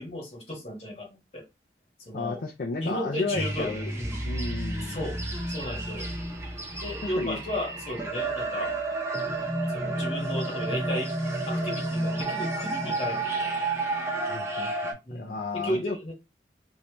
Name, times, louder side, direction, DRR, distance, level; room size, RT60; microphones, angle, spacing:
voice 1, 0.0-1.4 2.0-2.4 2.8-4.2 4.8-5.2 5.5-6.1 6.8-8.7 9.7-11.2 11.5-13.5 15.0-16.1, left 1 dB, 35° left, 1.5 m, -34 dB
voice 2, 2.1-3.9 4.2-5.1 7.0-7.4 14.3-16.0, left 3 dB, 50° left, 0.5 m, -33 dB
sound 1, 3.3-14.9, right 2 dB, 15° right, 0.8 m, -31 dB
3.2 x 2.7 x 3.0 m
head